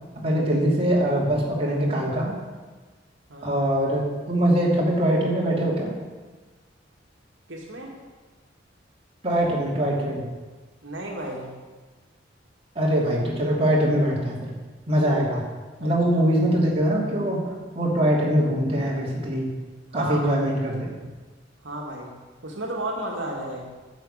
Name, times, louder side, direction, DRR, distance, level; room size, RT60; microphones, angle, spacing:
voice 1, 0.2-2.3 3.4-5.9 9.2-10.3 12.7-14.5 14.9-15.4 15.8-19.6 19.9-20.9, right 1 dB, 30° right, -4 dB, 2.8 m, -23 dB
voice 2, 7.5-8.0 10.8-11.5 15.2-15.3 15.8-16.2 19.9-20.4 21.6-22.1 22.4-23.6, right 1 dB, 85° right, -1 dB, 2.0 m, -33 dB
10.5 x 6.4 x 8.8 m, 1.3 s
head